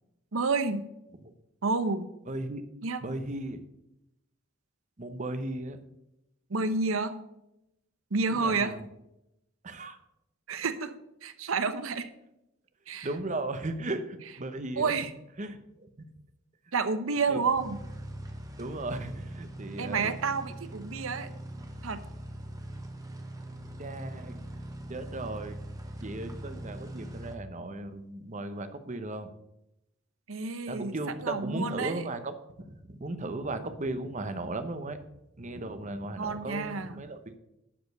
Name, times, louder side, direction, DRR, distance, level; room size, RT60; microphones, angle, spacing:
voice 1, 0.3-0.8 1.6-2.1 2.8-3.0 6.5-7.1 8.1-8.7 10.5-10.9 11.2-12.1 12.9-13.1 14.8-15.1 16.7-17.8 19.8-21.3 21.8-22.0 30.3-30.9 31.2-32.0 36.2-37.0, right 4 dB, 80° right, 11 dB, 0.9 m, -29 dB
voice 2, 2.3-2.6 3.0-3.6 5.0-5.8 8.3-8.8 9.6-10.0 12.9-15.1 15.4-15.9 17.3-17.4 18.6-20.1 23.8-24.4 24.9-25.6 26.0-29.3 30.7-35.0 35.4-37.4, right 2 dB, 35° right, 9 dB, 0.9 m, -36 dB
sound 1, 17.5-27.4, right 1 dB, 15° right, 1.1 m, -41 dB
11.0 x 5.2 x 6.6 m, 0.86 s
head